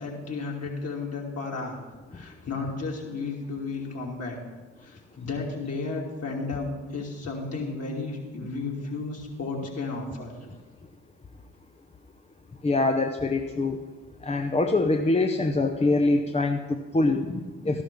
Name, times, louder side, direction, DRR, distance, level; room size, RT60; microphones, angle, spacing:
voice 1, 0.0-1.8 2.1-4.4 4.8-10.4, left 3 dB, 45° left, -1 dB, 2.9 m, -33 dB
voice 2, 12.6-13.8 14.2-17.8, left 2 dB, 20° left, 4 dB, 0.8 m, -24 dB
12.5 x 11.5 x 3.7 m, 1.2 s
hypercardioid pair, 50°, 36 cm